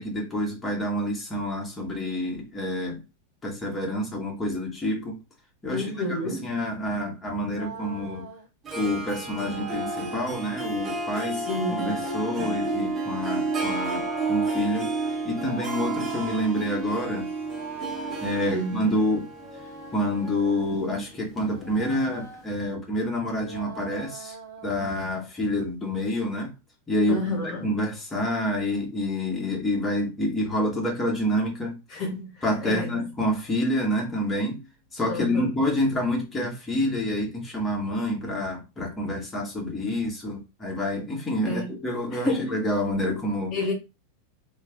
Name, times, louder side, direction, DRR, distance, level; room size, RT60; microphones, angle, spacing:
voice 1, 0.0-3.0 3.4-5.2 5.6-8.3 8.7-17.3 18.2-19.3 19.9-24.4 24.6-26.5 26.9-31.8 32.4-34.7 34.9-43.6, left 1 dB, 15° left, 1.6 m, -28 dB
voice 2, 5.7-6.5 11.3-12.0 12.4-12.5 18.5-18.8 27.1-27.7 31.9-33.0 35.1-35.5 41.4-41.7 42.1-42.6 43.5-43.7, left 1 dB, 35° left, 1.3 m, -30 dB
sound 1, 7.4-8.5 9.4-10.3 11.4-12.6 13.4-14.6 15.4-16.5 17.4-18.5 19.4-20.8 21.4-22.5 23.4-24.8, right 4 dB, 50° right, 1.4 m, -40 dB
Harp, 8.7-22.2, right 3 dB, 25° right, 1.1 m, -32 dB
3.2 x 3.2 x 3.5 m
figure-of-eight pair, 90°, 0 cm